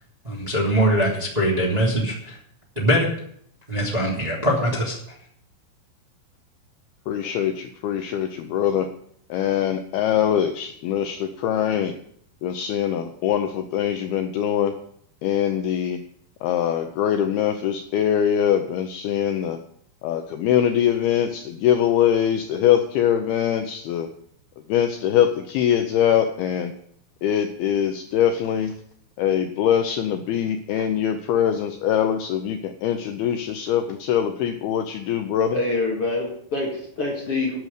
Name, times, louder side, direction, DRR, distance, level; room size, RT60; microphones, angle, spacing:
voice 1, 0.2-2.4 2.7-3.1 3.7-5.0, equal, 15° right, -3 dB, 1.7 m, -22 dB
voice 2, 7.1-8.9 9.3-11.9 12.4-14.8 15.2-16.0 16.4-19.6 20.0-24.1 24.7-26.7 27.2-28.7 29.2-35.6, left 9 dB, 90° left, 6 dB, 2.2 m, -23 dB
voice 3, 35.5-37.6, left 2 dB, 50° left, -2 dB, 1.8 m, -26 dB
11.0 x 6.5 x 9.1 m, 0.65 s
omnidirectional pair, 5.5 m